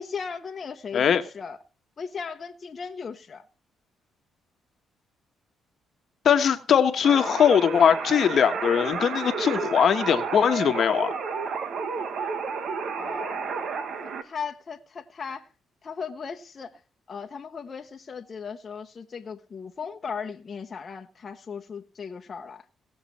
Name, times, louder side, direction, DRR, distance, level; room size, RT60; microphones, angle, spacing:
voice 1, 0.0-1.6 2.0-3.4 12.9-15.5 15.8-16.8 17.1-22.6, left 6 dB, 40° left, 1.0 m, -37 dB
voice 2, 6.2-11.1, left 8 dB, 60° left, 1.3 m, -21 dB
sound 1, 7.0-14.2, right 5 dB, 65° right, 1.5 m, -31 dB
18.5 x 6.7 x 4.3 m
cardioid pair, 90°, 0 cm